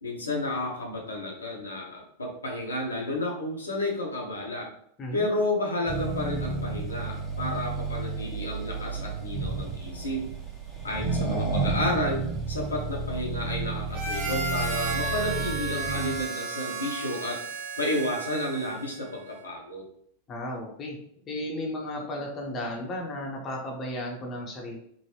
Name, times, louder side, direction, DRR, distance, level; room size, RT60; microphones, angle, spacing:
voice 1, 0.0-4.7 5.1-10.3 10.8-12.2 12.5-17.4 17.8-19.8, left 1 dB, 75° left, -2 dB, 0.8 m, -31 dB
voice 2, 5.0-5.3 20.3-21.0 21.2-24.8, left 1 dB, 25° left, 0 dB, 0.8 m, -34 dB
Accelerating revving vroom, 5.9-16.3, right 3 dB, 10° right, 0.8 m, -32 dB
Harmonica, 13.9-18.9, right 3 dB, 45° right, 0.6 m, -33 dB
3.8 x 2.0 x 3.1 m, 0.68 s
figure-of-eight pair, 90°, 0 cm